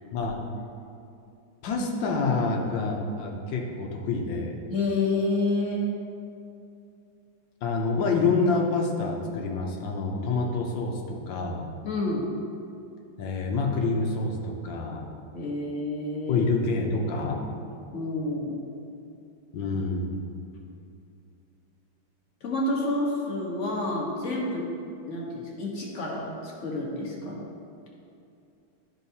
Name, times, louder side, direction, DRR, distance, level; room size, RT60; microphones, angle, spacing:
voice 1, 1.6-4.6 7.6-11.6 13.2-15.1 16.3-17.4 19.5-20.1, left 3 dB, 75° left, 1 dB, 1.5 m, -27 dB
voice 2, 4.7-5.9 11.8-12.3 15.3-16.5 17.9-18.5 22.4-24.7 25.0-27.4, left 2 dB, 40° left, -3 dB, 1.4 m, -29 dB
12.0 x 4.6 x 2.7 m, 2.6 s
omnidirectional pair, 2.2 m